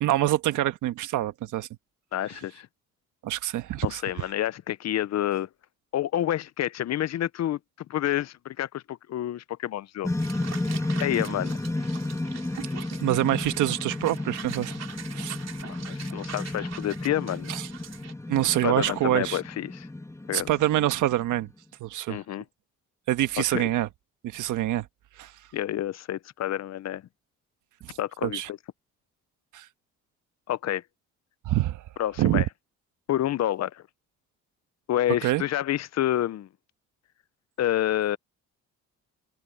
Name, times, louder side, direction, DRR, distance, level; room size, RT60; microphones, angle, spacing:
voice 1, 0.0-1.7 3.2-4.0 12.6-12.7 13.0-14.7 15.1-15.4 17.5-17.6 18.3-19.4 20.3-21.5 21.8-22.2 23.1-23.9 24.2-24.9 25.2-25.3 27.8-28.5 29.5-29.7 31.4-31.8 32.2-32.4 35.2-35.4, right 14 dB, 85° right, 1.4 m, -26 dB
voice 2, 2.1-2.7 3.8-5.5 5.9-7.6 7.9-10.1 11.0-11.6 15.6-17.5 18.6-19.9 20.3-20.5 22.1-22.4 23.4-23.7 25.5-27.0 28.0-28.6 30.5-30.8 32.0-32.5 33.1-33.8 34.9-36.5 37.6-38.2, left 12 dB, 60° left, 0.7 m, -28 dB
sound 1, 10.0-21.5, left 2 dB, 10° left, 2.1 m, -33 dB
sound 2, 10.2-18.1, right 8 dB, 60° right, 3.7 m, -44 dB
cardioid pair, 90°, 30 cm